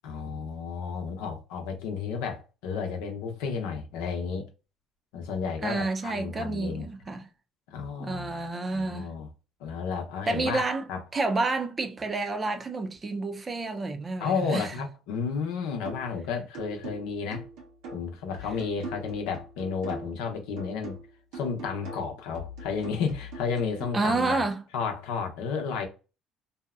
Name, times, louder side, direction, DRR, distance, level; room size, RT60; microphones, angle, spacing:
voice 1, 0.0-4.5 5.1-6.9 7.7-8.5 8.7-9.3 9.6-11.0 14.2-17.4 17.9-21.0 21.3-24.4 24.7-25.9, left 5 dB, 85° left, 0.7 m, -32 dB
voice 2, 5.6-7.3 8.0-9.1 10.3-10.9 11.1-14.7 23.9-24.6, right 3 dB, 30° right, 0.5 m, -29 dB
sound 1, 15.9-16.2 16.5-20.2 20.6-23.9, right 2 dB, 85° right, 1.1 m, -42 dB
2.7 x 2.1 x 2.3 m
supercardioid pair, 90°, 0 cm